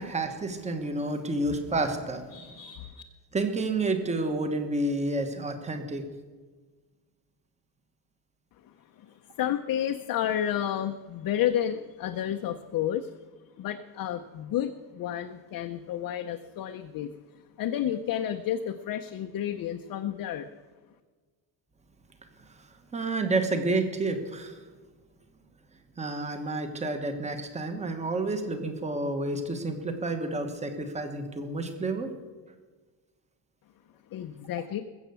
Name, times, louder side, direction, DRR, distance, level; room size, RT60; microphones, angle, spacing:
voice 1, 0.0-2.3 3.3-6.0 22.6-22.7 22.9-24.6 26.0-32.1, right 2 dB, 15° right, 7 dB, 1.2 m, -30 dB
voice 2, 2.3-3.0 8.6-13.1 13.6-17.1 17.6-20.5 34.1-34.8, left 10 dB, 45° left, 6 dB, 0.7 m, -31 dB
21.0 x 8.1 x 6.9 m, 1.4 s
cardioid pair, 180°, 47 cm